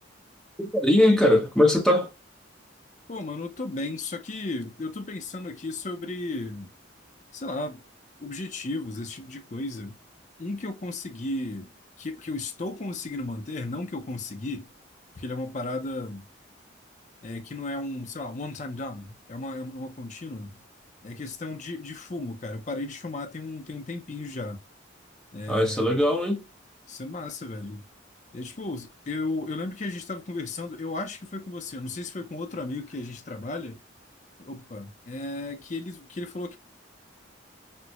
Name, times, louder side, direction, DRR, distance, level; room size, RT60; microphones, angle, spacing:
voice 1, 0.6-2.1 25.5-26.4, left 1 dB, 5° left, 0.8 m, -21 dB
voice 2, 3.1-6.7 7.3-7.8 8.2-10.0 10.4-14.7 15.1-16.3 17.2-20.6 21.0-24.6 25.3-25.9 26.9-27.8 28.3-33.8 34.5-36.6, left 2 dB, 40° left, 0.5 m, -34 dB
4.3 x 2.1 x 2.3 m
head